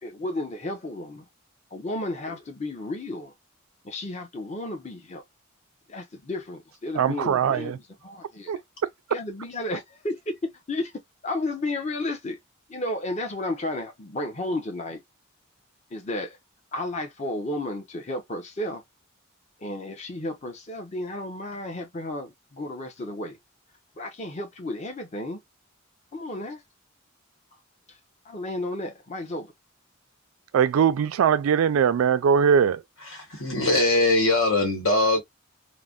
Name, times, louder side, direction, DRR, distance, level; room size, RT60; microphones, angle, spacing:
voice 1, 0.0-1.3 1.7-3.3 3.8-5.2 5.9-8.6 9.1-10.9 11.2-12.4 12.7-15.0 15.9-16.4 16.7-18.8 19.6-23.4 24.0-25.4 26.1-26.6 28.2-29.5, left 1 dB, 35° left, 0.7 m, -33 dB
voice 2, 7.0-7.8 8.5-8.6 30.5-32.8, right 7 dB, 85° right, 0.3 m, -21 dB
voice 3, 33.0-35.2, left 2 dB, 75° left, 1.4 m, -22 dB
3.2 x 2.1 x 2.4 m
head